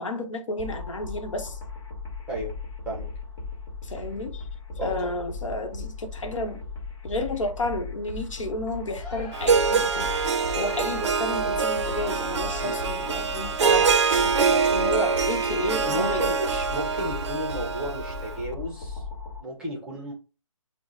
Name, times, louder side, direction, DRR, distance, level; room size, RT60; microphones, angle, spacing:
voice 1, 0.0-1.6 3.8-4.5 4.8-6.6 7.0-16.2, left 1 dB, 65° left, 0.9 m, -32 dB
sound 1, 0.6-19.4, left 4 dB, 45° left, 1.4 m, -37 dB
Crowd, 9.0-16.7, left 1 dB, 25° left, 1.1 m, -43 dB
Harp, 9.3-18.3, right 5 dB, 55° right, 0.5 m, -24 dB
voice 2, 15.8-19.0 19.4-20.1, right 1 dB, 5° right, 0.7 m, -32 dB
4.5 x 2.1 x 4.0 m
figure-of-eight pair, 155°, 17 cm